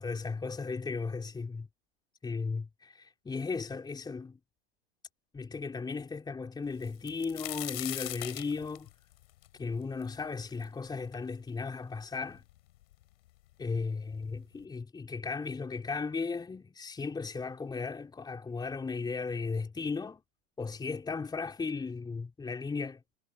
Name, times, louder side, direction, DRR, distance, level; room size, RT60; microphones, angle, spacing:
voice 1, 0.0-1.7 2.2-4.4 5.3-8.9 9.6-12.4 13.6-20.2 20.6-23.0, left 4 dB, 10° left, 3.8 m, -36 dB
sound 1, 6.8-10.6 11.1-11.2 12.0-12.1 12.4-13.0 13.9-14.0 14.4-14.6, left 16 dB, 60° left, 6.0 m, -40 dB
hypercardioid pair, 105°, 33 cm